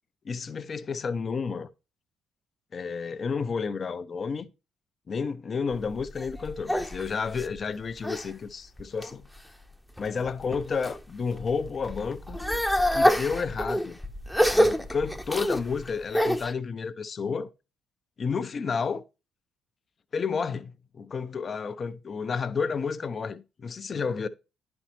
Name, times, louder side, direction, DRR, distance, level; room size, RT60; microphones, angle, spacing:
voice 1, 0.2-1.7 2.7-4.5 5.1-9.3 10.0-12.4 12.9-14.0 14.5-17.5 18.2-19.0 20.1-24.3, left 5 dB, 45° left, 0.5 m, -31 dB
sound 1, 5.7-8.3 8.8-9.4 10.0-11.0 11.3-16.5, equal, 5° left, 0.7 m, -27 dB
10.5 x 4.3 x 3.0 m
hypercardioid pair, 50°, 0 cm